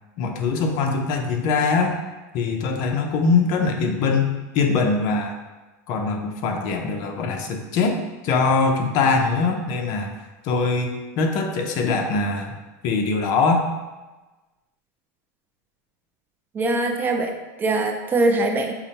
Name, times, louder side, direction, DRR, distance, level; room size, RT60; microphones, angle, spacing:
voice 1, 0.2-1.9 2.3-5.4 5.9-12.6 12.8-13.6, left 4 dB, 50° left, 3 dB, 0.6 m, -22 dB
voice 2, 16.5-18.7, right 2 dB, 20° right, 4 dB, 0.3 m, -22 dB
5.8 x 2.1 x 4.1 m, 1.2 s
supercardioid pair, 145°, 9 cm